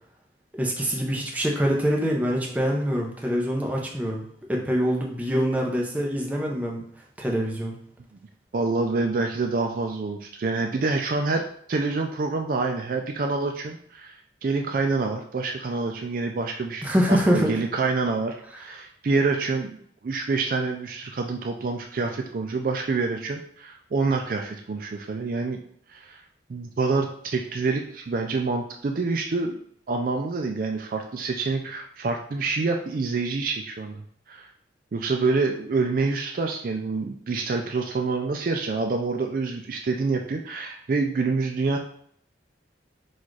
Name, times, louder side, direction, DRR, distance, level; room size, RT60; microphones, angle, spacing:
voice 1, 0.5-4.2 4.5-6.8 7.2-7.7 16.8-17.5, equal, 10° right, -1 dB, 0.7 m, -24 dB
voice 2, 8.5-11.4 11.7-19.7 20.0-25.6 25.9-26.2 26.5-29.6 29.9-34.0 34.3-34.5 34.9-41.8, right 3 dB, 50° right, 3 dB, 0.4 m, -27 dB
4.2 x 2.4 x 4.6 m, 0.65 s
head